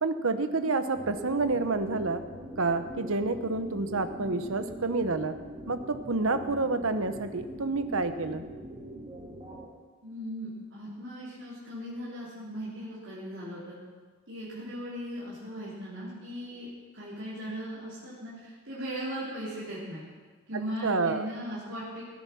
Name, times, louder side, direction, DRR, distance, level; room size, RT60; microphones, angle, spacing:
voice 1, 0.0-2.2 2.6-5.3 5.7-8.4 20.8-21.3, right 3 dB, 80° right, 10 dB, 1.0 m, -28 dB
sound 1, 0.9-9.7, right 1 dB, 25° right, 2.4 m, -43 dB
voice 2, 10.0-13.8 14.3-16.7 16.9-20.1 20.5-22.0, equal, 60° right, -9 dB, 4.1 m, -38 dB
17.5 x 9.5 x 6.2 m, 1.4 s
head